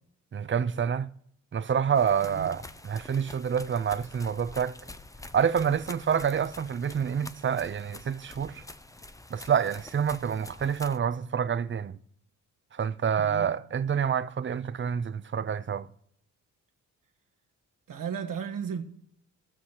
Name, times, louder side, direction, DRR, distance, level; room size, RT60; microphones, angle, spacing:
voice 1, 0.3-1.1 1.5-4.7 5.3-8.6 9.3-12.0 12.7-15.9, right 7 dB, 35° right, 0.6 m, -27 dB
sound 1, 1.9-11.0, left 2 dB, 10° left, 0.6 m, -47 dB
voice 2, 13.2-13.6 17.9-18.8, right 7 dB, 75° right, 1.3 m, -35 dB
17.5 x 6.2 x 2.9 m
cardioid pair, 70°, 33 cm